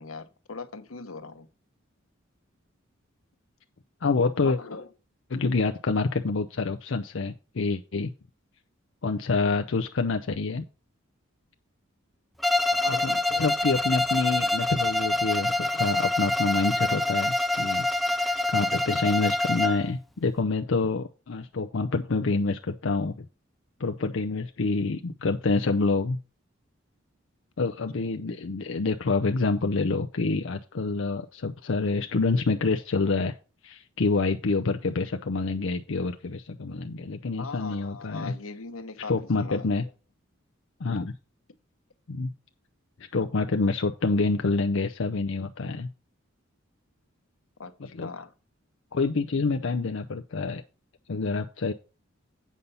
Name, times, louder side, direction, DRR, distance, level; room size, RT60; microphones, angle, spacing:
voice 1, 0.0-1.5 4.4-4.9 12.7-13.5 37.4-39.7 47.6-47.7 48.0-48.3, left 4 dB, 90° left, 1.1 m, -40 dB
voice 2, 4.0-4.6 5.3-8.1 9.0-10.6 12.9-17.9 18.1-23.2 23.8-26.2 27.6-33.3 33.6-38.3 39.1-39.8 40.8-41.1 42.1-42.3 43.1-45.9 47.8-48.1 48.9-50.6 51.1-51.7, left 3 dB, 65° left, 0.6 m, -27 dB
Bowed string instrument, 12.4-19.9, left 2 dB, ahead, 0.4 m, -26 dB
8.4 x 5.4 x 5.6 m
head